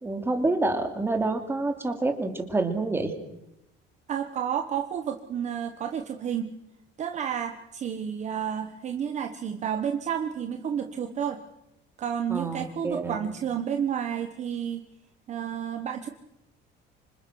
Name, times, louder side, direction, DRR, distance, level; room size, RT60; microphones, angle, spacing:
voice 1, 0.0-3.1 12.3-13.2, right 2 dB, 10° right, 5 dB, 2.8 m, -27 dB
voice 2, 4.1-6.5 7.0-11.4 12.0-14.9 15.3-16.1, right 8 dB, 35° right, 6 dB, 1.2 m, -31 dB
26.5 x 25.5 x 6.3 m, 0.85 s
cardioid pair, 170°, 21 cm